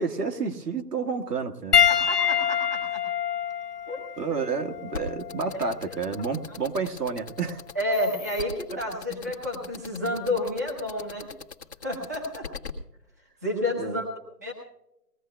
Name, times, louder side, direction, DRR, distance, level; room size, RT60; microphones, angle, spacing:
voice 1, 0.0-1.8 4.2-7.6 13.8-14.0, right 5 dB, 75° right, 5 dB, 1.7 m, -30 dB
Piano, 1.7-6.4 7.3-7.5 9.5-9.6, left 9 dB, 70° left, 1.1 m, -26 dB
voice 2, 1.9-3.1 3.9-4.0 5.5-6.0 6.5-6.6 7.7-11.3 11.8-12.5 13.4-14.0 14.4-14.5, left 1 dB, 10° right, -5 dB, 1.0 m, -30 dB
sound 1, 4.9-12.7, left 6 dB, 40° left, 1.4 m, -39 dB
20.5 x 16.0 x 2.2 m, 0.85 s
hypercardioid pair, 175°, 48 cm